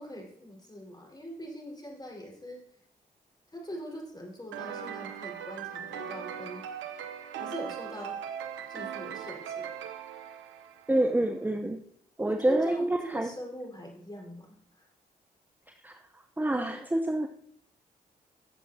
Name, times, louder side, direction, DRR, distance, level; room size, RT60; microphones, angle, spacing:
voice 1, 0.0-2.8 3.5-6.7 7.4-8.2 8.7-9.6 12.3-14.9, equal, 20° left, -1 dB, 4.5 m, -42 dB
sound 1, 4.5-11.2, right 8 dB, 80° right, 0.8 m, -39 dB
voice 2, 10.9-11.8 12.2-12.9 13.1-13.3 15.8-16.0 16.4-17.3, right 1 dB, 10° right, 5 dB, 0.8 m, -27 dB
15.0 x 7.3 x 2.8 m, 0.66 s
hypercardioid pair, 40°, 19 cm